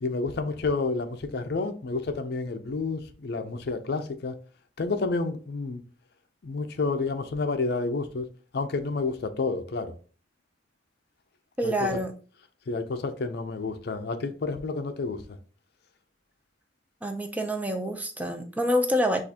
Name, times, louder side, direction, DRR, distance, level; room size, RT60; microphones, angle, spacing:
voice 1, 0.0-4.4 4.8-5.8 6.4-8.3 8.5-9.9 11.6-12.0 12.7-15.2, left 3 dB, 60° left, 0.5 m, -30 dB
voice 2, 11.6-12.1 17.0-19.2, equal, 10° right, 0.4 m, -27 dB
6.4 x 2.4 x 2.8 m
head